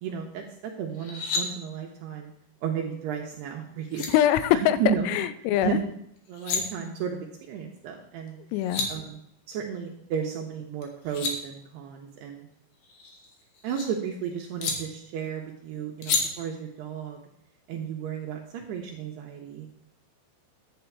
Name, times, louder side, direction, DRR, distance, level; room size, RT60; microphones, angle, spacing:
voice 1, 0.0-2.3 2.6-4.1 4.5-5.1 5.5-5.9 6.3-7.2 7.5-8.4 8.9-9.2 9.5-12.5 13.6-17.2 17.7-19.7, right 7 dB, 75° right, 1 dB, 2.5 m, -33 dB
sound 1, 0.9-1.4 3.5-3.6 3.9-4.1 6.2-6.6 8.3-8.4 8.5-8.9 10.8-11.3 12.8-13.9 14.6-14.7 16.0-16.2, left 4 dB, 60° left, 2.7 m, -30 dB
voice 2, 4.1-5.7 8.5-8.9, left 11 dB, 90° left, 14 dB, 3.2 m, -23 dB
11.5 x 8.6 x 4.6 m, 0.75 s
omnidirectional pair, 5.8 m